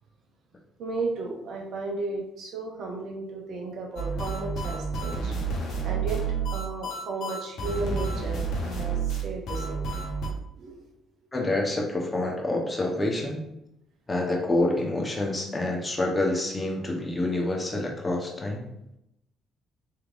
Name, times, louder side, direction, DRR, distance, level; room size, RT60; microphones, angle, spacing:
voice 1, 0.8-5.3 5.8-6.2 6.5-9.8 10.6-10.9, right 3 dB, 60° right, 0 dB, 0.6 m, -34 dB
sound 1, 4.0-10.3, right 4 dB, 65° left, 0.8 m, -30 dB
voice 2, 11.3-13.4 14.1-18.7, left 2 dB, 25° left, 0 dB, 0.9 m, -27 dB
3.5 x 3.2 x 2.5 m, 0.83 s
hypercardioid pair, 50°, 0 cm